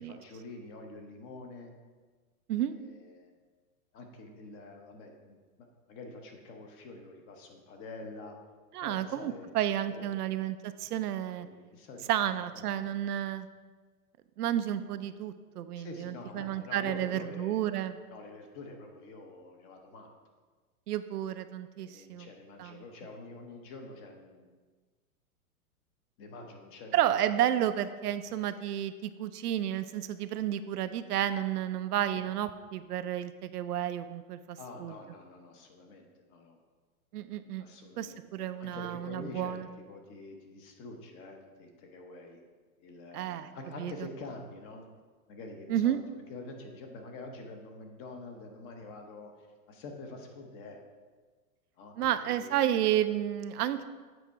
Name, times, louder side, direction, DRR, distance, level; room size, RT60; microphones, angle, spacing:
voice 1, 0.0-1.7 2.6-3.3 3.9-5.4 5.9-8.4 8.8-9.6 9.9-10.2 11.4-12.9 15.8-20.1 21.8-24.5 26.2-27.0 34.6-36.6 37.6-42.4 42.8-44.9 45.3-46.0 46.3-49.3 49.7-50.8 51.8-52.5, left 2 dB, 30° left, 3 dB, 0.9 m, -47 dB
voice 2, 8.7-11.5 12.1-13.5 14.4-18.0 20.9-22.3 22.6-22.7 26.9-34.9 37.1-37.6 38.0-39.7 43.1-43.5 43.8-44.1 45.7-46.0 52.0-53.9, right 11 dB, 90° right, 11 dB, 0.6 m, -31 dB
8.0 x 4.1 x 4.6 m, 1.4 s
hypercardioid pair, 145°, 45 cm